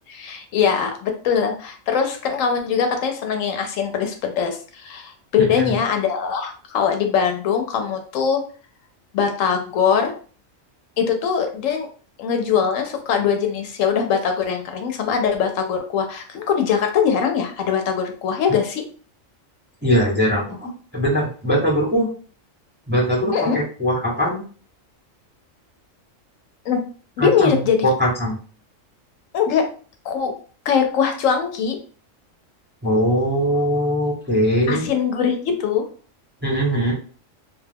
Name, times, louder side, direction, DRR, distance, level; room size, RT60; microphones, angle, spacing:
voice 1, 0.1-8.4 9.1-10.1 11.0-11.9 12.2-18.8 23.3-23.6 26.6-26.8 27.2-27.8 29.3-29.6 30.0-30.3 30.6-31.8 34.7-35.8, left 7 dB, 80° left, 5 dB, 0.9 m, -21 dB
voice 2, 5.4-5.8 19.8-22.1 22.9-24.4 27.2-28.4 32.8-34.9 36.4-36.9, equal, 10° right, -3 dB, 0.6 m, -21 dB
2.4 x 2.3 x 3.3 m, 0.40 s
omnidirectional pair, 1.4 m